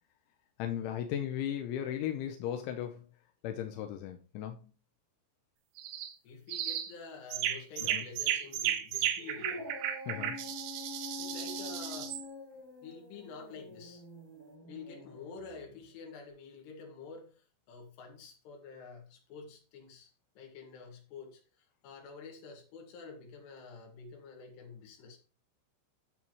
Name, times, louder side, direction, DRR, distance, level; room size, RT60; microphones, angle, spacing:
voice 1, 0.6-3.1 3.4-4.6 7.9-8.0 10.1-10.4, left 10 dB, 80° left, 6 dB, 2.8 m, -36 dB
sound 1, 5.8-6.1 6.5-6.9 7.3-12.2, right 10 dB, 85° right, 3.5 m, -34 dB
voice 2, 6.2-9.7 11.2-12.2 12.8-14.0 14.7-20.1 20.4-25.2, left 5 dB, 60° left, 1 dB, 3.6 m, -48 dB
Dog, 9.2-15.8, left 2 dB, 20° left, 2.7 m, -46 dB
9.7 x 7.0 x 3.0 m, 0.35 s
omnidirectional pair, 5.9 m